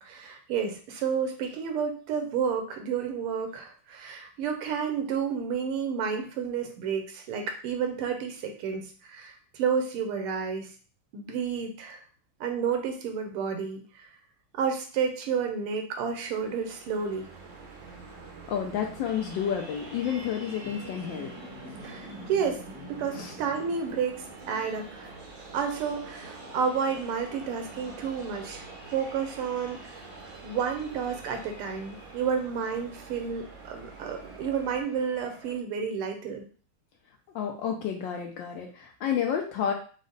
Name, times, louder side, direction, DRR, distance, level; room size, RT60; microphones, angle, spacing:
voice 1, 0.0-10.7 11.1-12.0 12.4-14.1 14.5-17.3 21.8-22.6 22.9-25.1 25.5-28.7 28.9-30.0 30.4-36.4, right 6 dB, 80° right, 5 dB, 1.7 m, -31 dB
sound 1, 16.0-34.8, right 4 dB, 60° right, 0.8 m, -47 dB
voice 2, 18.5-21.3 23.1-23.3 37.3-39.7, left 8 dB, 75° left, 2 dB, 1.1 m, -30 dB
sound 2, 19.1-35.6, right 1 dB, 25° right, 0.7 m, -48 dB
5.0 x 2.1 x 3.9 m, 0.40 s
omnidirectional pair, 2.4 m